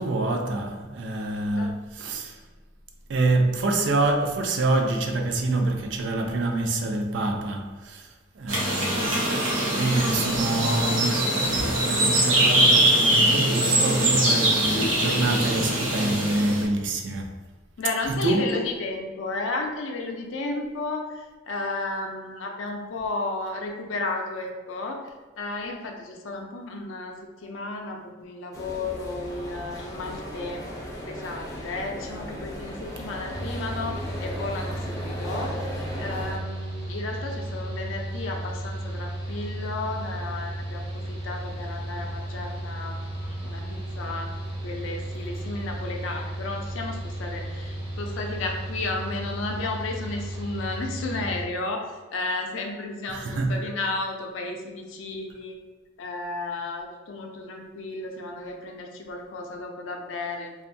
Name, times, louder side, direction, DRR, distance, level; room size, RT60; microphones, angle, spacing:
voice 1, 0.0-2.4 3.1-9.3 9.7-17.3 18.1-18.5 53.1-53.6, right 2 dB, 65° right, 0.4 m, -26 dB
sound 1, 8.5-16.6, right 1 dB, 90° right, 0.7 m, -22 dB
voice 2, 17.8-30.8 31.1-44.3 44.6-55.6 56.0-60.5, left 2 dB, 75° left, 0.4 m, -33 dB
sound 2, 28.5-36.4, equal, 20° left, 0.4 m, -37 dB
Mechanical fan, 33.3-51.4, right 1 dB, 25° right, 0.6 m, -34 dB
2.6 x 2.3 x 2.6 m
head